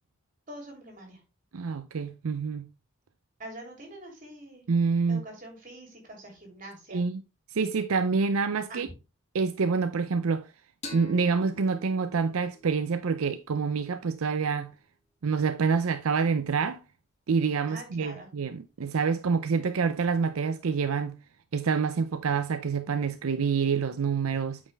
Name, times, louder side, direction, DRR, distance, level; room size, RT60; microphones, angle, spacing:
voice 1, 0.5-1.2 3.4-4.7 5.1-7.0 8.7-8.8 17.7-18.3, right 1 dB, 40° right, 3.1 m, -44 dB
voice 2, 1.5-2.7 4.7-5.2 6.9-7.2 7.5-8.9 9.3-10.5 10.9-14.7 15.2-16.8 17.3-21.2 21.5-24.6, right 5 dB, 80° right, 0.5 m, -27 dB
sound 1, 10.8-14.2, left 2 dB, 30° left, 2.0 m, -47 dB
8.6 x 5.2 x 3.4 m
head